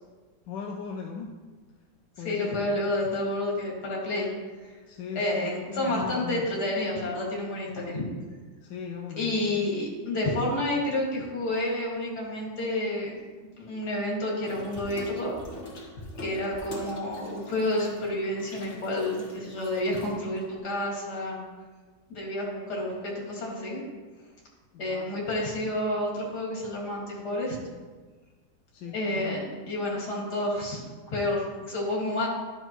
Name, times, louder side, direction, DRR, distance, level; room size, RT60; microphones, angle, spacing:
voice 1, 0.5-1.4 2.2-2.7 4.9-6.5 8.6-9.6 24.7-25.1 28.7-29.4, left 6 dB, 90° left, 2 dB, 1.3 m, -38 dB
voice 2, 2.2-4.3 5.2-8.0 9.2-13.2 13.6-15.3 16.2-21.4 22.1-23.8 24.8-27.6 28.9-29.4 29.7-30.8 31.1-32.3, left 1 dB, 65° left, -4 dB, 2.6 m, -29 dB
Water tap faucet / Sink (filling or washing), 14.4-20.6, left 2 dB, 45° left, 1.7 m, -43 dB
12.0 x 6.7 x 3.0 m, 1.4 s
omnidirectional pair, 1.9 m